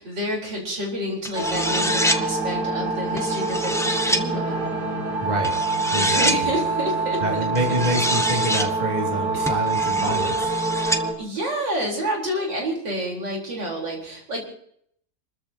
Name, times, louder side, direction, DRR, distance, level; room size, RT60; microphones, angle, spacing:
voice 1, 0.0-4.7 5.9-7.5 9.3-9.6 11.2-14.5, equal, 85° right, -1 dB, 4.8 m, -29 dB
sound 1, 1.2-2.2 3.2-4.2 5.4-6.4 7.6-8.7 9.5-11.0, equal, 5° left, 0.4 m, -26 dB
sound 2, 1.3-11.1, right 3 dB, 60° right, 3.7 m, -25 dB
voice 2, 5.2-5.5 5.9-6.5 7.2-10.5, equal, 25° right, 0 dB, 2.7 m, -27 dB
28.0 x 14.0 x 2.9 m, 0.66 s
omnidirectional pair, 1.9 m